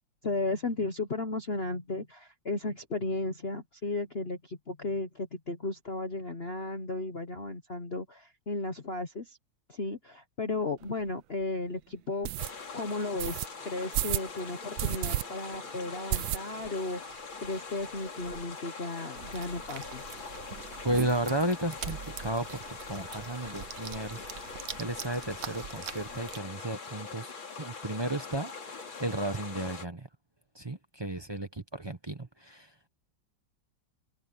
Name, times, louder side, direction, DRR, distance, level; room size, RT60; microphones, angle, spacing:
voice 1, 0.2-9.4 9.7-12.3 12.7-20.0, left 2 dB, 35° left, 1.1 m, -34 dB
sound 1, 10.8-10.9 11.4-11.5 12.2-12.5 13.2-13.5 13.9-14.3 14.8-15.2 15.5-15.6 16.1-16.8 17.1-17.2 17.4-17.5 17.8-18.4, right 14 dB, 75° right, 1.4 m, -31 dB
sound 2, 12.4-29.8, left 4 dB, 75° left, 3.7 m, -43 dB
sound 3, 19.1-26.4, right 8 dB, 50° right, 0.9 m, -43 dB
voice 2, 20.8-27.3 27.6-30.1 30.5-32.7, right 1 dB, 25° right, 0.6 m, -34 dB
omnidirectional pair, 2.2 m